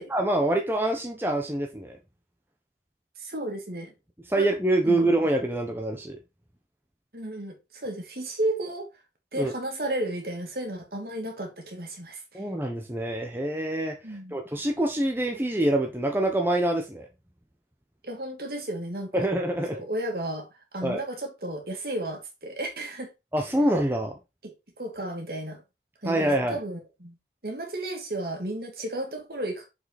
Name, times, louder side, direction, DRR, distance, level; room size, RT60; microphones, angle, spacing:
voice 1, 0.1-2.0 4.3-6.2 9.4-9.5 12.3-14.0 14.3-17.1 19.1-19.8 20.8-21.0 23.3-24.2 26.0-26.6, right 1 dB, 10° right, 1.0 m, -25 dB
voice 2, 3.2-3.9 4.4-4.5 4.8-5.1 7.1-8.9 9.3-12.4 14.0-14.4 18.0-19.3 19.7-23.1 24.4-25.6 26.0-27.2 27.4-29.6, right 1 dB, 60° right, 2.6 m, -33 dB
7.1 x 5.7 x 4.1 m
head